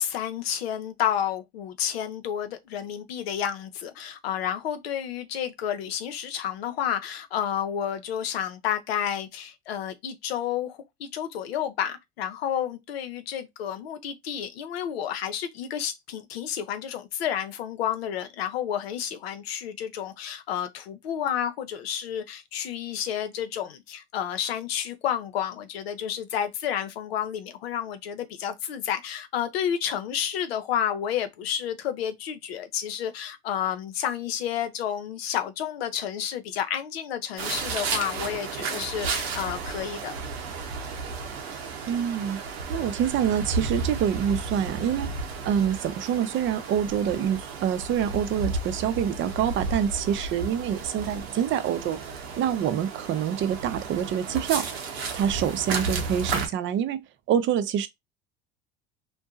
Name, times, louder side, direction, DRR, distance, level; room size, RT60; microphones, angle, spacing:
voice 1, 0.0-40.1, left 9 dB, 80° left, 0.6 m, -30 dB
sound 1, 37.4-56.5, right 4 dB, 90° right, 0.7 m, -33 dB
voice 2, 41.9-42.4 42.7-54.7 55.1-57.0 57.3-57.9, right 9 dB, 40° right, 0.5 m, -26 dB
2.6 x 2.1 x 2.4 m
hypercardioid pair, 75°, 30 cm